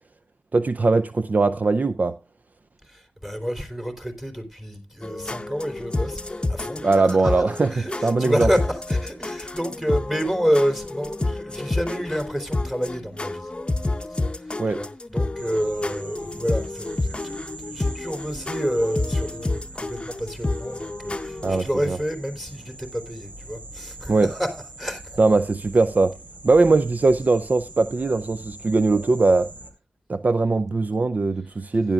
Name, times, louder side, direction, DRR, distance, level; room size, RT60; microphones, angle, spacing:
voice 1, 0.5-2.2 6.8-8.5 14.6-14.8 21.4-22.0 24.1-24.3 25.2-26.2 26.4-29.5 30.1-31.9, right 3 dB, 50° right, 0.5 m, -20 dB
voice 2, 2.9-13.5 14.4-17.4 17.6-25.0, equal, 10° right, 3.4 m, -29 dB
sound 1, 5.0-21.6, left 2 dB, 30° left, 0.8 m, -29 dB
sound 2, 15.4-29.7, right 2 dB, 70° right, 2.9 m, -42 dB
15.5 x 11.0 x 2.4 m
wide cardioid pair, 65°, 4 cm